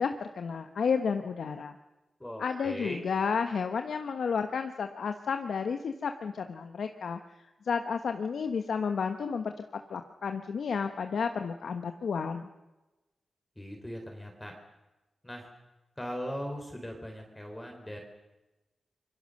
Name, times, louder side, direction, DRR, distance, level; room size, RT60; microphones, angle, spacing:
voice 1, 0.0-1.7 2.4-7.2 7.6-9.5 9.9-12.5, left 6 dB, 80° left, 7 dB, 1.2 m, -31 dB
voice 2, 2.2-3.0 13.6-14.5 15.2-15.5 16.0-18.0, equal, 10° left, 2 dB, 3.9 m, -39 dB
26.5 x 23.5 x 6.6 m, 1.1 s
wide cardioid pair, 100°, 0 cm